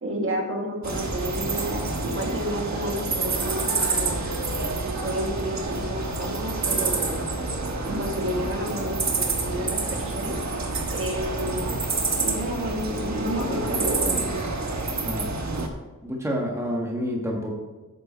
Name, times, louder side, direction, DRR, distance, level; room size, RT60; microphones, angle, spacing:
voice 1, 0.0-4.3 5.0-7.2 7.8-10.4 10.9-11.8 12.2-14.3, equal, 40° right, 0 dB, 2.2 m, -30 dB
sound 1, 0.8-15.7, right 3 dB, 60° right, 1.4 m, -28 dB
voice 2, 16.0-17.5, equal, 10° right, -1 dB, 1.6 m, -28 dB
9.7 x 6.7 x 4.4 m, 1.2 s
wide cardioid pair, 75°, 32 cm